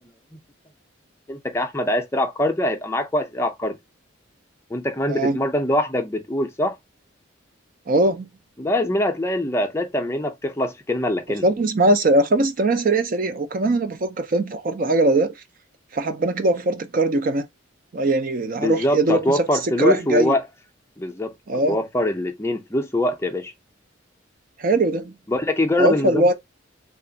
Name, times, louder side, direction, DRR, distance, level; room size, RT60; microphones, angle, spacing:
voice 1, 1.3-3.8 4.7-6.7 8.6-11.5 18.5-20.4 21.0-23.5 25.3-26.3, left 1 dB, 15° left, 0.5 m, -23 dB
voice 2, 5.1-5.4 7.9-8.3 11.4-15.3 15.9-17.5 17.9-20.3 21.5-21.8 24.6-25.1 25.8-26.3, right 2 dB, 45° right, 0.5 m, -20 dB
3.4 x 2.4 x 3.9 m
head